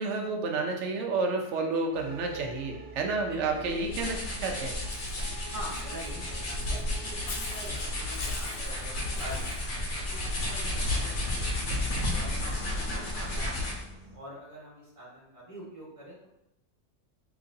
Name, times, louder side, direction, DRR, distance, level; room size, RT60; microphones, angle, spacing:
voice 1, 0.0-4.7, right 3 dB, 80° right, 2 dB, 0.9 m, -30 dB
sound 1, 1.9-14.2, right 3 dB, ahead, 0.8 m, -48 dB
sound 2, 3.5-13.9, left 1 dB, 85° left, 1.2 m, -32 dB
Walk footsteps / Bird, 4.9-9.7, left 4 dB, 60° left, 0.7 m, -45 dB
voice 2, 5.5-9.6 10.1-13.7 14.1-16.3, right 1 dB, 30° right, -5 dB, 1.1 m, -45 dB
3.9 x 3.0 x 2.6 m, 0.87 s
omnidirectional pair, 1.2 m